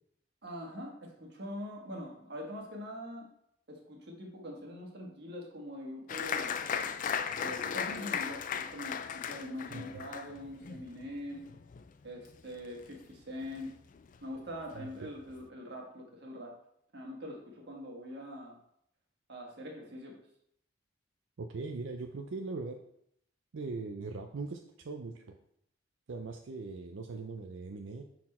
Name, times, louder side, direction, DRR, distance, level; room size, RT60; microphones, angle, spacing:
voice 1, 0.4-3.3 3.7-6.6 7.4-11.5 12.0-13.8 14.2-16.6 16.9-18.6 19.3-20.2, left 1 dB, 60° right, 0 dB, 1.4 m, -43 dB
Applause, 6.1-13.2 13.4-14.2 14.6-14.7 15.0-15.4, left 7 dB, 45° left, 0.3 m, -37 dB
voice 2, 14.8-15.1 21.4-22.8 23.5-25.1 26.1-28.0, right 3 dB, 90° right, 4 dB, 0.5 m, -40 dB
5.9 x 4.4 x 4.2 m, 0.72 s
head